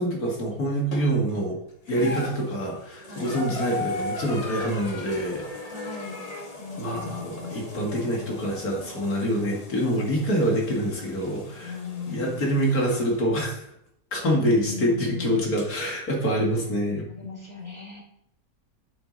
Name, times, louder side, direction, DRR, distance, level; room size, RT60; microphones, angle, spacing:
voice 1, 0.0-1.6 1.9-5.7 6.8-11.8 12.1-13.6 14.1-17.1, equal, 65° left, -1 dB, 2.5 m, -26 dB
sound 1, 0.9-1.4 1.9-13.1 14.2-14.3 15.6-15.7, left 2 dB, 25° left, 1.2 m, -38 dB
voice 2, 3.1-3.4 5.7-6.2 6.6-7.7 11.6-12.5 14.3-15.5 17.1-18.0, left 5 dB, 20° right, -3 dB, 1.8 m, -38 dB
8.1 x 7.8 x 4.0 m, 0.74 s
omnidirectional pair, 1.7 m